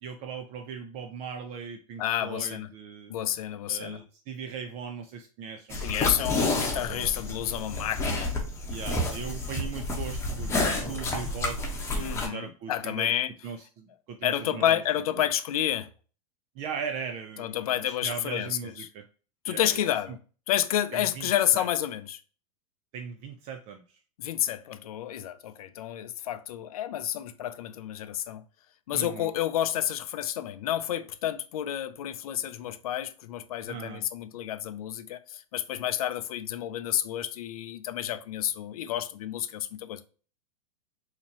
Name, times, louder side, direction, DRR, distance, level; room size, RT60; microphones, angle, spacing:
voice 1, 0.0-3.2 3.7-7.1 8.7-11.6 11.9-13.1 13.4-14.8 16.6-19.0 19.5-20.2 20.9-21.7 22.9-24.0 28.9-29.3 33.7-34.0, right 6 dB, 35° right, 0.4 m, -39 dB
voice 2, 2.0-2.7 3.1-4.0 5.8-8.3 12.0-13.3 14.2-15.9 17.4-18.5 19.4-20.2 20.5-22.2 24.2-28.4 28.9-40.0, left 11 dB, 80° left, 0.5 m, -30 dB
sound 1, 5.7-12.3, left 2 dB, 15° left, 1.0 m, -30 dB
4.1 x 2.8 x 2.8 m
supercardioid pair, 135°, 18 cm